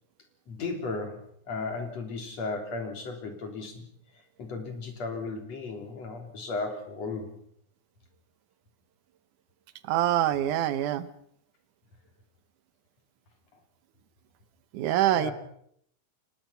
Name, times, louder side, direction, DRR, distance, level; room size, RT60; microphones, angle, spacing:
voice 1, 0.5-3.9 4.4-7.3 13.5-13.6 15.1-15.3, left 3 dB, 55° left, 4 dB, 4.6 m, -35 dB
voice 2, 9.9-11.1 14.7-15.3, right 12 dB, 85° right, 14 dB, 2.6 m, -25 dB
29.5 x 18.5 x 5.8 m, 0.68 s
omnidirectional pair, 3.5 m